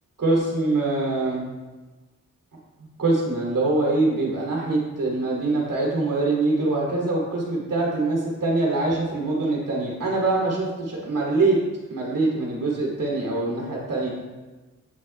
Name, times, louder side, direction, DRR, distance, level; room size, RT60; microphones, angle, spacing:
voice 1, 0.2-1.4 2.8-11.6 11.9-14.1, right 2 dB, 85° right, -4 dB, 3.0 m, -24 dB
17.0 x 6.5 x 2.4 m, 1.2 s
wide cardioid pair, 105°, 31 cm